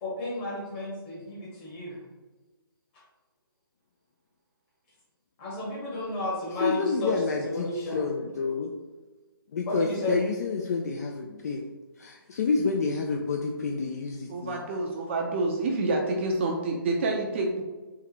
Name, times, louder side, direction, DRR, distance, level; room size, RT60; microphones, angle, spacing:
voice 1, 0.0-2.0 5.4-7.1 7.4-8.1 9.7-10.2, left 1 dB, 25° left, -6 dB, 1.5 m, -33 dB
voice 2, 6.6-7.7 7.9-8.7 9.5-11.6 12.0-14.6, left 4 dB, 45° left, 1 dB, 0.4 m, -28 dB
voice 3, 14.3-17.6, right 2 dB, 30° right, 1 dB, 0.5 m, -28 dB
3.6 x 3.2 x 2.9 m, 1.2 s
figure-of-eight pair, 145°, 12 cm